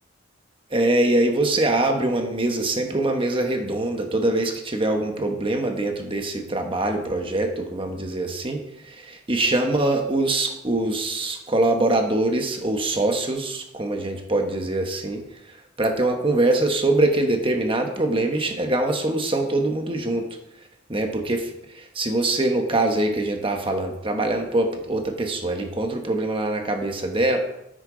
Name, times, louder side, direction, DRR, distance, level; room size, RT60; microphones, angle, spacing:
voice 1, 0.7-15.2 15.8-20.3 20.9-27.4, right 2 dB, 25° right, 4 dB, 1.2 m, -23 dB
10.0 x 8.1 x 4.0 m, 0.84 s
head